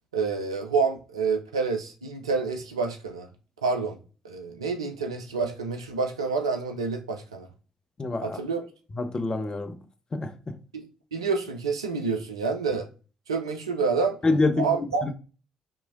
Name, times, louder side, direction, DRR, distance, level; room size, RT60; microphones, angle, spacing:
voice 1, 0.1-3.3 3.6-4.0 4.2-7.5 8.2-8.6 10.7-10.8 11.1-12.9 13.3-14.2 14.6-15.0, right 4 dB, 80° right, 0.4 m, -28 dB
voice 2, 8.0-8.4 8.9-9.8 10.1-10.5 14.2-15.1, left 3 dB, 30° left, 0.5 m, -26 dB
3.7 x 3.0 x 2.4 m
figure-of-eight pair, 45°, 3 cm